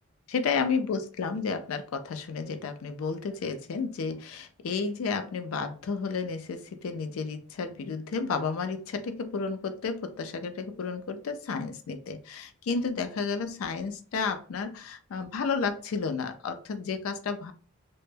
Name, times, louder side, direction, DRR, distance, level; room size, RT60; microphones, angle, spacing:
voice 1, 0.3-17.5, left 5 dB, 90° left, 9 dB, 0.4 m, -32 dB
2.1 x 2.1 x 3.1 m, 0.41 s
head